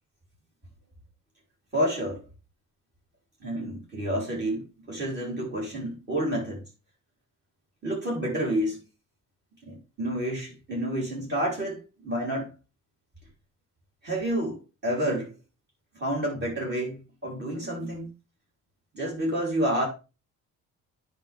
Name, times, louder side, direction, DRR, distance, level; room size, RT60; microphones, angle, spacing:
voice 1, 1.7-2.2 3.4-6.6 7.8-8.8 9.6-12.5 14.0-15.3 15.9-18.1 18.9-19.9, right 1 dB, 35° right, 3.4 m, -29 dB
9.0 x 5.2 x 3.4 m
cardioid pair, 90°, 30 cm